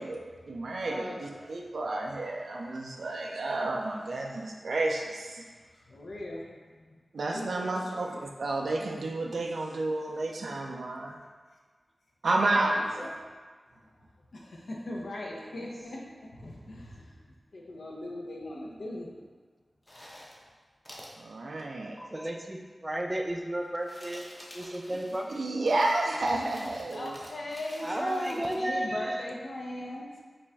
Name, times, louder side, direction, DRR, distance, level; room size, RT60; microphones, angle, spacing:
voice 1, 0.0-5.4 7.1-11.1 12.2-12.7 21.2-22.0 25.3-27.1, right 2 dB, 85° right, 0 dB, 0.4 m, -31 dB
voice 2, 0.7-1.6 5.9-6.5 7.3-8.0 12.4-13.3 14.3-17.1 17.5-19.1 26.9-30.2, left 1 dB, 80° left, -2 dB, 0.7 m, -39 dB
sound 1, 19.8-20.5 20.9-21.2 22.0-22.1 23.6-28.6, equal, 25° left, 0.8 m, -49 dB
voice 3, 22.1-24.3 24.5-25.3 27.8-29.2, right 1 dB, 20° right, 2 dB, 0.4 m, -33 dB
5.2 x 2.5 x 3.3 m, 1.5 s
wide cardioid pair, 75°, 0 cm